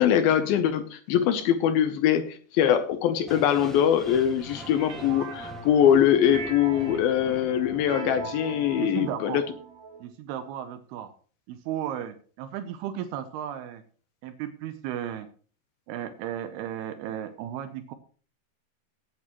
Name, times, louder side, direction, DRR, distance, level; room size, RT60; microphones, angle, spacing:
voice 1, 0.0-9.4, left 9 dB, 75° left, 10 dB, 2.4 m, -23 dB
sound 1, 3.3-9.3, right 1 dB, ahead, 1.0 m, -44 dB
sound 2, 4.6-6.0 6.3-10.1, right 4 dB, 60° right, 2.7 m, -40 dB
voice 2, 8.8-9.4 10.0-11.1 11.5-13.8 14.2-15.3 15.9-17.9, right 10 dB, 80° right, 9 dB, 2.7 m, -34 dB
17.5 x 8.6 x 3.0 m, 0.41 s
omnidirectional pair, 4.7 m